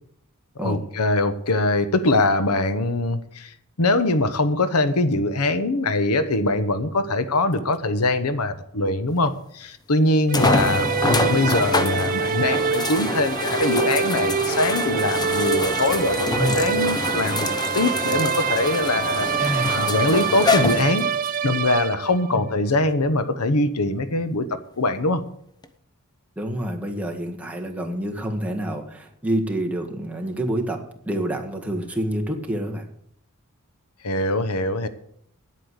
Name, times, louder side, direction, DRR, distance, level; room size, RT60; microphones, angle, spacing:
voice 1, 0.6-3.5 3.8-17.5 17.7-21.1 21.4-24.5 24.8-25.2 34.0-34.9, left 2 dB, 85° left, 12 dB, 1.0 m, -22 dB
sound 1, 9.3-9.4 10.3-21.4 22.1-22.2 25.6-25.7, left 3 dB, 20° left, 0.8 m, -26 dB
sound 2, 10.3-22.4, right 7 dB, 40° right, 0.4 m, -26 dB
voice 2, 16.3-16.7 19.4-19.9 22.3-22.4 26.3-32.9, right 1 dB, 5° right, 1 dB, 1.7 m, -27 dB
9.9 x 8.5 x 8.1 m, 0.70 s
head